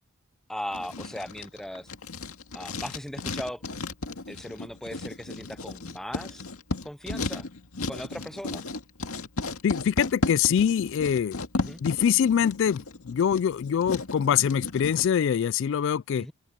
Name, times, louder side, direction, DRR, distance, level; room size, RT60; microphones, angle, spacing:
voice 1, 0.5-1.9 2.5-3.6 4.3-6.4 6.8-7.5 7.9-8.7 11.6-11.8 16.2-16.3, equal, ahead, 0.6 m, -38 dB
Writing, 0.7-15.1, left 3 dB, 85° left, 2.1 m, -35 dB
voice 2, 9.6-11.4 11.8-16.3, left 8 dB, 60° left, 0.3 m, -24 dB
open air
head